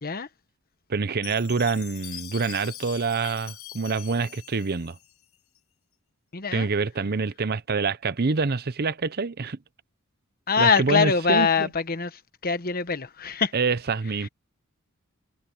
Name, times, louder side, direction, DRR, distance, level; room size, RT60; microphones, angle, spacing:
voice 1, 0.9-5.0 6.5-9.6 10.6-11.7 13.5-14.3, right 4 dB, 45° right, 0.7 m, -26 dB
Chime, 1.2-5.6, left 13 dB, 65° left, 1.3 m, -43 dB
voice 2, 6.3-6.7 10.5-13.5 14.2-14.3, left 5 dB, 40° left, 1.1 m, -24 dB
head